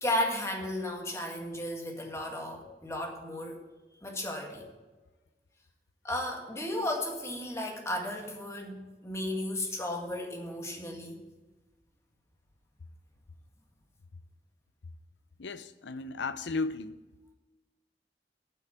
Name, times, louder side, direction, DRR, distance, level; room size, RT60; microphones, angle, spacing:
voice 1, 0.0-3.6 4.0-4.7 6.0-11.2, left 1 dB, 15° left, 1.9 m, -34 dB
voice 2, 15.4-17.0, left 3 dB, 85° left, 0.6 m, -35 dB
9.2 x 5.9 x 7.9 m
head